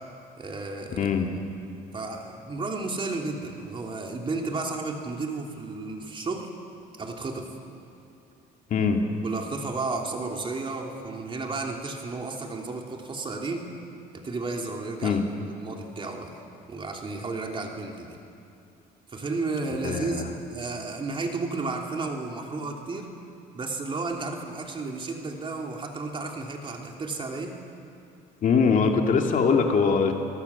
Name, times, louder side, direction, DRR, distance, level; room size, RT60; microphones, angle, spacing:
voice 1, 0.4-1.1 1.9-6.5 7.0-7.5 9.2-13.7 14.1-16.4 16.7-18.2 19.1-23.1 23.5-27.5, right 3 dB, 30° right, 1 dB, 3.1 m, -33 dB
voice 2, 1.0-1.3 8.7-9.0 15.0-15.2 19.8-20.2 28.4-30.1, left 5 dB, 50° left, 2 dB, 2.5 m, -22 dB
29.0 x 18.5 x 7.2 m, 2.6 s
cardioid pair, 110°, 17 cm